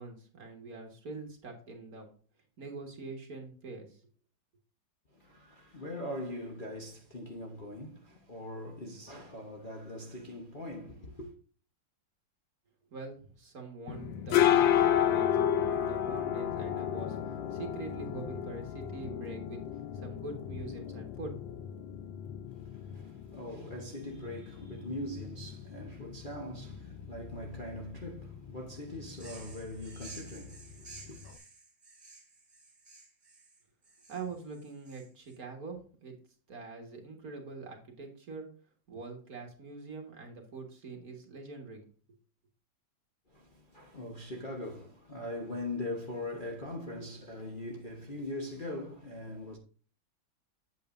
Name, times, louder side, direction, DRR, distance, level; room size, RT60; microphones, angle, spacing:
voice 1, 0.0-2.1 2.6-4.0 12.9-19.6 19.9-21.4 34.1-36.2 36.5-38.5 38.9-41.8, right 3 dB, 50° right, 2.1 m, -44 dB
voice 2, 5.1-11.3 22.5-31.2 43.3-49.6, left 1 dB, 30° left, 1.0 m, -41 dB
sound 1, 13.9-31.4, left 10 dB, 75° left, 1.5 m, -33 dB
sound 2, 29.1-35.4, right 3 dB, 25° right, 2.8 m, -53 dB
8.3 x 8.1 x 2.6 m
omnidirectional pair, 2.2 m